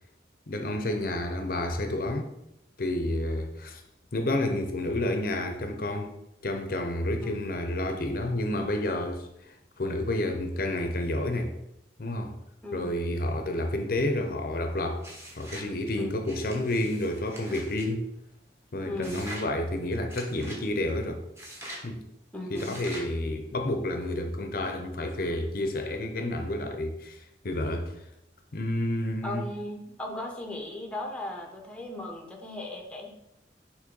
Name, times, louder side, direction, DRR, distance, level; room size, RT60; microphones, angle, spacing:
voice 1, 0.5-2.3 2.8-3.8 4.1-6.1 6.4-11.5 12.0-12.4 12.7-15.1 15.4-18.0 18.7-21.2 21.8-22.0 22.5-28.0 28.5-29.5, left 1 dB, 50° left, 0.6 m, -30 dB
voice 2, 12.6-13.0 16.0-16.2 18.8-19.2 22.3-22.8 29.2-33.1, left 1 dB, 5° left, 0.8 m, -37 dB
sound 1, 15.0-15.7 16.2-17.9 19.0-19.5 20.1-20.6 21.4-21.9 22.5-23.1, equal, 15° right, 1.2 m, -43 dB
6.4 x 3.2 x 5.3 m
head